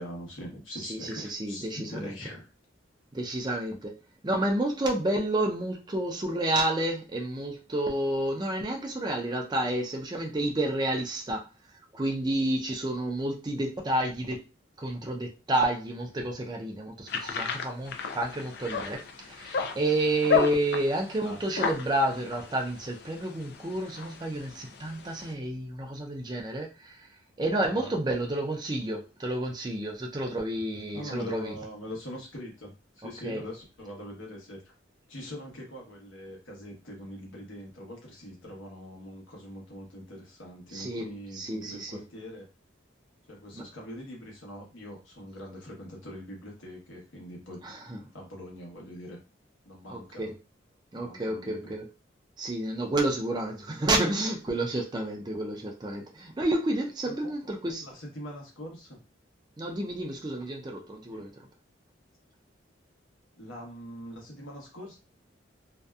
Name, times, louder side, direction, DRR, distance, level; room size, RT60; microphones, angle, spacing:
voice 1, 0.0-2.5 21.2-21.4 27.6-27.9 30.9-34.7 35.1-42.5 43.3-47.6 47.9-49.2 49.6-50.3 50.9-51.8 57.0-57.5 57.8-59.0 61.1-61.3 63.4-65.0, left 1 dB, 85° left, 1.0 m, -42 dB
voice 2, 0.8-2.2 3.1-4.0 4.2-11.5 11.9-14.4 14.8-19.0 19.3-27.1 27.4-31.5 33.2-33.4 40.7-41.1 41.3-42.0 47.6-48.0 49.9-50.3 50.9-51.8 52.4-57.8 59.6-61.3, right 1 dB, 20° right, 0.4 m, -30 dB
sound 1, 17.1-25.3, left 6 dB, 55° left, 0.4 m, -33 dB
2.6 x 2.2 x 2.3 m
head